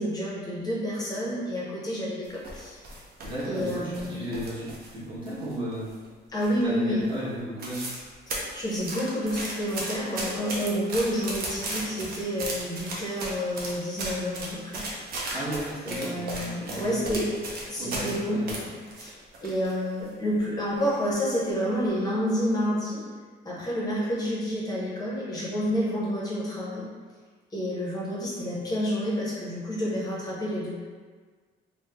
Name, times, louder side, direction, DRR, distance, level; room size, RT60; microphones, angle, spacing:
voice 1, 0.0-2.8 3.5-4.3 6.3-7.1 8.4-14.8 15.8-17.3 17.7-18.7 19.0-23.0 23.4-26.9 27.5-30.7, equal, 20° left, -6 dB, 0.7 m, -29 dB
sound 1, 2.2-5.0 5.3-6.1 6.4-6.8 7.1-7.2 7.4-8.0 8.3-18.2 18.5-19.7 20.1-20.2 20.8-21.1 21.5-21.7, right 2 dB, 50° right, 0.6 m, -35 dB
voice 2, 3.2-5.9 6.6-7.8 15.3-17.2 17.8-18.7, right 1 dB, 25° right, -8 dB, 0.9 m, -35 dB
3.1 x 2.0 x 3.3 m, 1.5 s
cardioid pair, 170°, 19 cm